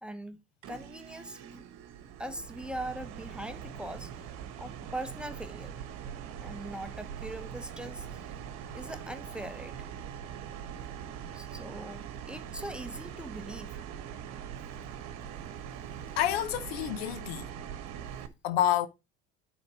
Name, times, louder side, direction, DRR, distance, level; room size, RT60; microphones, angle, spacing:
voice 1, 0.0-0.4 0.7-1.6 2.2-4.1 4.6-5.7 6.4-8.3 8.7-9.9 11.3-13.8, right 1 dB, 5° right, 1.0 m, -41 dB
sound 1, 0.6-18.3, right 9 dB, 50° right, 1.3 m, -42 dB
voice 2, 16.2-17.5 18.4-18.9, left 12 dB, 65° left, 1.0 m, -28 dB
9.5 x 4.4 x 4.7 m
figure-of-eight pair, 65°, 33 cm